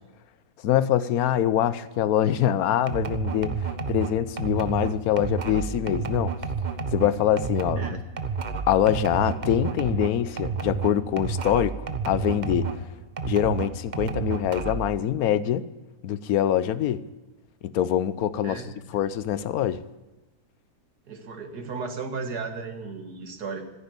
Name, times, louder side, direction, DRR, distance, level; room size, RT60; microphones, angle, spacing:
voice 1, 0.6-6.3 6.9-8.0 8.7-12.7 13.3-15.7 16.0-17.0 17.6-18.6 18.9-19.8, left 10 dB, 70° left, 15 dB, 1.2 m, -24 dB
sound 1, 2.9-12.8 13.2-14.9, right 5 dB, 35° right, 0.9 m, -30 dB
voice 2, 18.4-18.8 21.1-23.6, right 4 dB, 75° right, 5 dB, 2.2 m, -35 dB
15.5 x 9.9 x 8.3 m, 1.1 s
omnidirectional pair, 1.7 m